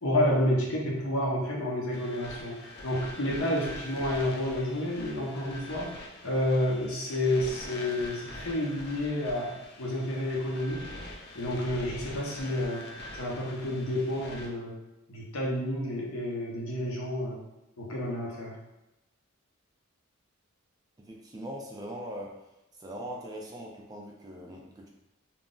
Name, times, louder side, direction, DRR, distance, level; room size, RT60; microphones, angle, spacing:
voice 1, 0.0-5.9 6.2-10.9 11.3-12.8 13.2-14.7 15.1-17.4 17.8-18.6, left 1 dB, 75° left, -3 dB, 0.7 m, -30 dB
sound 1, 1.9-14.5, left 1 dB, 50° left, 0.4 m, -44 dB
voice 2, 21.0-22.4 22.8-24.9, equal, 20° right, -1 dB, 0.3 m, -41 dB
2.4 x 2.0 x 3.6 m, 0.93 s
head